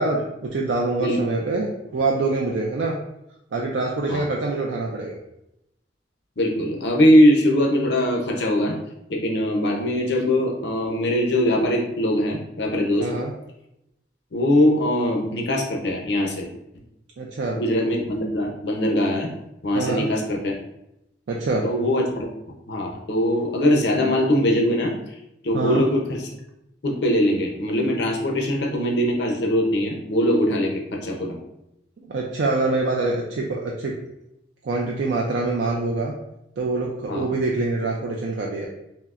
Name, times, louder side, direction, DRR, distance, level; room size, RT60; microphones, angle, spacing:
voice 1, 0.0-3.0 3.5-5.2 13.0-13.3 17.2-17.6 19.7-20.1 21.3-21.7 25.5-25.9 32.0-34.0 34.6-36.1 36.6-38.7, right 3 dB, 80° right, -1 dB, 0.4 m, -25 dB
voice 2, 1.0-1.4 4.1-4.3 6.4-8.8 9.1-13.1 14.3-16.5 17.5-19.3 19.6-20.6 21.6-22.3 22.7-24.9 25.4-26.2 26.8-31.4 37.1-37.3, left 1 dB, 70° left, 0 dB, 0.6 m, -21 dB
5.6 x 2.1 x 2.4 m, 0.85 s
head